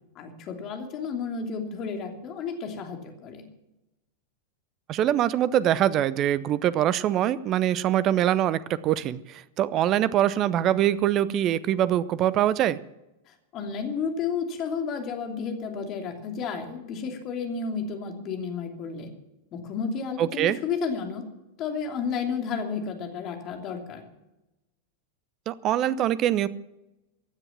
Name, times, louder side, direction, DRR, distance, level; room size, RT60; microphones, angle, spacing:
voice 1, 0.2-3.4 13.5-19.1 19.5-21.2 21.6-24.0, left 5 dB, 35° left, 4 dB, 2.8 m, -32 dB
voice 2, 4.9-12.8 20.2-20.6 25.5-26.5, right 11 dB, 35° right, 18 dB, 0.7 m, -23 dB
16.0 x 9.8 x 7.4 m, 0.95 s
figure-of-eight pair, 90°, 0 cm